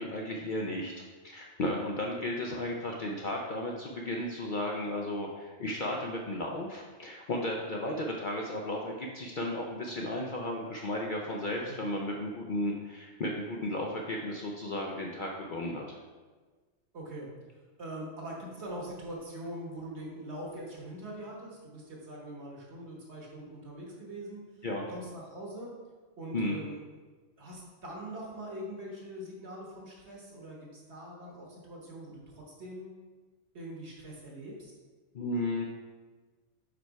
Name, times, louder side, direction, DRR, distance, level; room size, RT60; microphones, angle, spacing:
voice 1, 0.0-16.0 24.6-24.9 26.3-26.6 35.1-35.7, left 1 dB, 55° left, -1 dB, 0.6 m, -34 dB
voice 2, 16.9-17.3 17.8-24.4 24.9-25.7 26.2-26.8 27.4-32.9 33.5-34.7, right 1 dB, 60° right, -2 dB, 1.5 m, -42 dB
5.0 x 4.5 x 4.6 m, 1.4 s
omnidirectional pair, 1.3 m